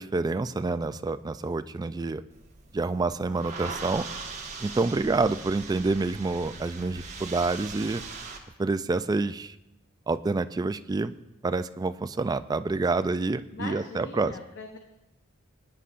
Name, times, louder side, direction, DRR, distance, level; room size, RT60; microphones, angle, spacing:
voice 1, 0.0-2.2 2.7-4.1 4.6-8.0 8.6-9.5 10.1-11.1 11.4-14.4, right 3 dB, 20° right, 12 dB, 0.3 m, -28 dB
sound 1, 2.3-8.4, right 4 dB, 35° right, 1.3 m, -40 dB
voice 2, 13.5-14.8, left 3 dB, 55° left, 3 dB, 0.9 m, -40 dB
21.0 x 9.8 x 2.5 m, 0.89 s
head